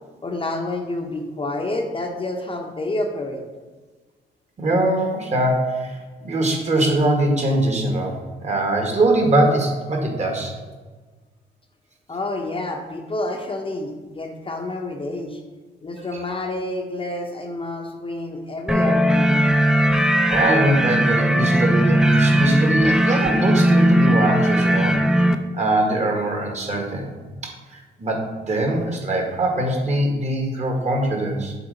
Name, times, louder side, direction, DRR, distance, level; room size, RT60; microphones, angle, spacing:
voice 1, 0.2-3.4 12.1-15.4 15.8-19.4, left 2 dB, 25° left, 2 dB, 0.8 m, -29 dB
voice 2, 4.6-10.6 16.1-16.2 20.3-27.1 27.4-31.5, right 1 dB, 35° right, 2 dB, 1.4 m, -22 dB
sound 1, 18.7-25.4, equal, 5° right, 0.4 m, -18 dB
7.0 x 4.6 x 4.0 m, 1.3 s
cardioid pair, 90°, 20 cm